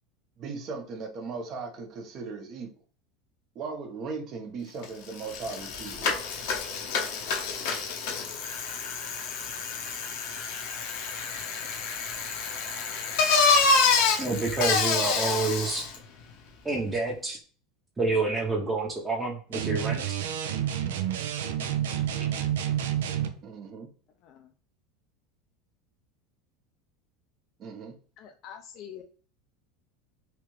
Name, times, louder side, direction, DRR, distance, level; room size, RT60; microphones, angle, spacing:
voice 1, 0.4-2.7 3.5-6.2 23.4-23.9 27.6-28.0, right 4 dB, 45° right, 0.9 m, -38 dB
Bicycle, 4.8-4.9 5.2-16.0, left 4 dB, 70° left, 0.8 m, -27 dB
voice 2, 14.2-15.8 16.6-17.4 18.0-20.2 21.9-22.0, right 3 dB, 15° right, 0.8 m, -28 dB
sound 1, 19.5-23.4, right 10 dB, 85° right, 0.4 m, -29 dB
voice 3, 28.2-29.0, left 9 dB, 50° left, 0.4 m, -45 dB
3.3 x 2.4 x 3.1 m
supercardioid pair, 105°, 0 cm